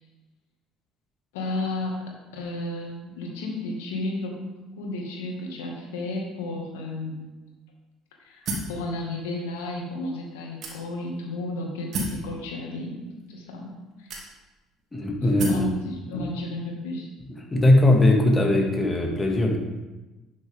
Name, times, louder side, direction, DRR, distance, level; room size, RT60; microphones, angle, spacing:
voice 1, 1.3-1.9 2.3-4.4 4.8-7.2 8.2-13.0 13.3-14.1 15.5-17.1, left 2 dB, 80° left, 0 dB, 2.0 m, -33 dB
sound 1, 8.5-8.8 9.6-9.7 10.6-11.1 11.9-12.2 13.2-13.3 14.1-14.6 15.4-15.7, right 2 dB, 55° right, 2.3 m, -31 dB
voice 2, 14.9-15.7 16.1-16.3 17.5-19.6, left 1 dB, 20° left, 1 dB, 2.1 m, -20 dB
11.0 x 6.6 x 3.6 m, 1.1 s
hypercardioid pair, 60°, 0 cm